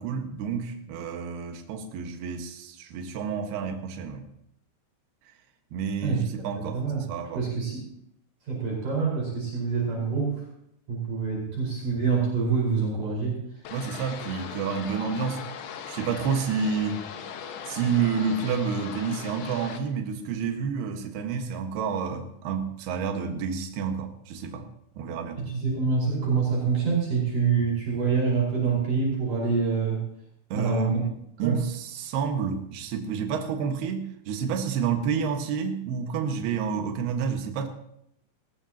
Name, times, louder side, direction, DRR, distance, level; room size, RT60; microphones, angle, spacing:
voice 1, 0.0-4.2 5.7-7.4 13.7-15.4 15.9-17.0 17.6-24.6 25.0-25.4 30.5-31.1 31.4-37.7, right 6 dB, 65° right, 4 dB, 3.3 m, -29 dB
voice 2, 6.6-7.0 7.3-7.8 8.5-10.4 10.9-13.4 25.4-30.0 30.5-31.0 31.4-31.6, right 5 dB, 45° right, -4 dB, 6.1 m, -26 dB
sound 1, 13.7-19.8, left 7 dB, 80° left, 3.7 m, -39 dB
19.0 x 19.0 x 2.9 m, 0.74 s
omnidirectional pair, 5.2 m